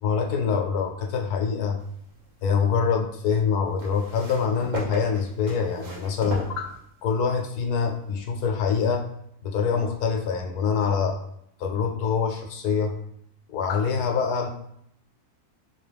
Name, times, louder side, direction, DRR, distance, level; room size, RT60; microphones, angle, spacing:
voice 1, 0.0-1.8 2.4-6.7 7.0-9.0 9.4-11.2 11.6-12.9 13.5-14.5, left 6 dB, 90° left, 3 dB, 1.1 m, -25 dB
sound 1, 1.8-2.6 3.8-7.2 8.1-8.2, right 1 dB, 60° right, 1.4 m, -37 dB
3.9 x 2.9 x 3.3 m, 0.73 s
omnidirectional pair, 1.6 m